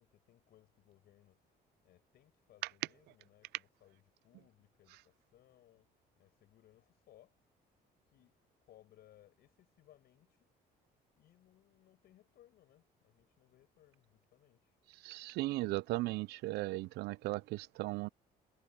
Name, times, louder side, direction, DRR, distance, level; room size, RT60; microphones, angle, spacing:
voice 1, 0.0-1.6 1.8-7.3 8.1-8.3 8.6-10.5 11.2-14.8, left 13 dB, 70° left, 7.6 m, -66 dB
voice 2, 15.0-18.1, right 19 dB, 75° right, 0.4 m, -37 dB
cardioid pair, 110°, 17 cm